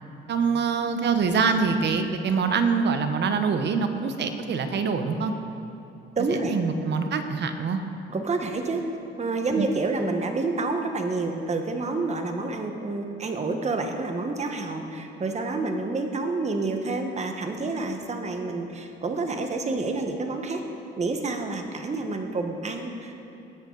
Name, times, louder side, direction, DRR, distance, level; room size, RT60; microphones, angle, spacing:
voice 1, 0.3-5.3 6.3-7.8 9.6-9.7, right 5 dB, 60° right, 7 dB, 1.1 m, -25 dB
voice 2, 6.2-6.6 8.1-8.9 9.2-20.6 21.0-23.3, right 3 dB, 35° right, 4 dB, 1.3 m, -28 dB
19.0 x 8.4 x 4.0 m, 2.9 s
cardioid pair, 90°, 20 cm